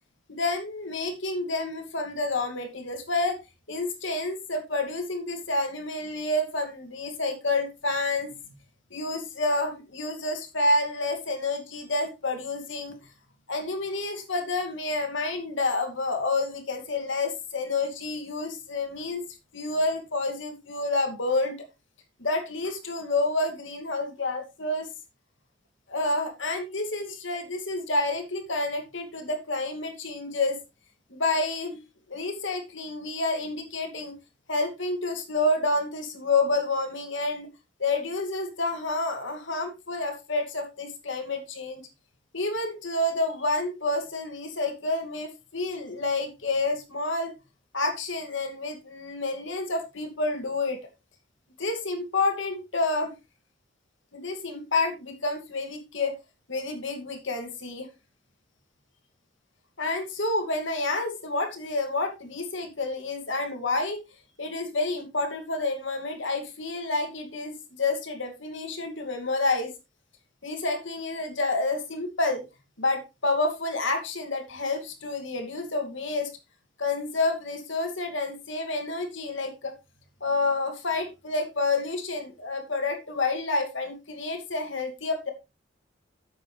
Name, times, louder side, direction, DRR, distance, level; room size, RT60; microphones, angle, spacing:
voice 1, 0.3-3.4 3.7-8.5 8.9-12.9 13.5-19.2 19.5-21.6 22.2-24.9 25.9-30.6 31.1-31.8 32.1-34.1 34.5-37.5 37.8-41.8 42.3-47.3 47.7-50.8 51.6-53.1 54.1-56.1 56.5-57.9 59.8-64.0 64.4-69.7 70.4-72.4 72.8-76.3 76.8-79.7 80.2-85.3, left 2 dB, 75° left, 4 dB, 2.4 m, -29 dB
11.5 x 8.0 x 3.3 m, 0.26 s
head